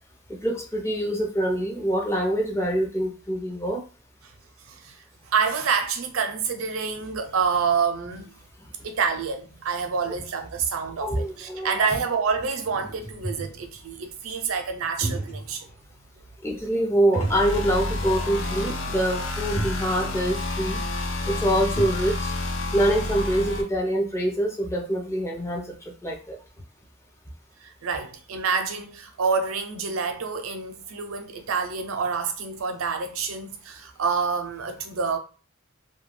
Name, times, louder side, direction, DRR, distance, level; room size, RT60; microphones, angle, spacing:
voice 1, 0.3-3.8 10.1-10.2 11.0-11.8 16.4-20.8 21.3-22.3 22.7-25.7 26.0-26.4, right 1 dB, 15° left, 0.5 m, -25 dB
voice 2, 4.6-8.3 8.8-15.7 27.6-35.2, right 5 dB, 90° right, 0.5 m, -27 dB
sound 1, 11.3-11.4 12.0-12.1 12.3-13.8 14.8-15.7 16.0-16.1 17.1-18.0 18.3-18.4 19.2-19.3 19.5-19.9 21.2-21.3 21.5-22.1, right 2 dB, 90° left, 1.2 m, -33 dB
sound 2, 17.2-23.6, left 2 dB, 65° left, 0.5 m, -29 dB
2.3 x 2.2 x 3.1 m
head